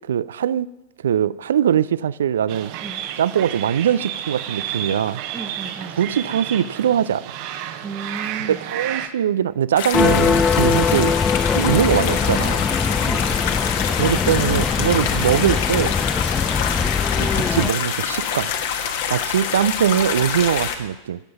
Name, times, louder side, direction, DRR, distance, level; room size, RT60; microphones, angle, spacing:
voice 1, 0.1-0.7 1.0-2.7 3.2-5.2 6.0-7.2 8.4-11.1 11.5-12.6 14.0-15.9 17.2-18.5 19.1-21.2, right 9 dB, 65° right, 20 dB, 0.3 m, -21 dB
sound 1, 2.5-9.1, right 10 dB, 45° right, 1.0 m, -31 dB
voice 2, 5.3-6.0 7.8-8.7 13.0-13.6, right 4 dB, 15° right, 13 dB, 0.8 m, -34 dB
sound 2, 9.8-20.8, left 8 dB, 55° left, 1.4 m, -26 dB
sound 3, 9.9-17.7, left 5 dB, 15° left, 0.5 m, -21 dB
17.0 x 7.8 x 5.7 m, 1.0 s
figure-of-eight pair, 90°, 0 cm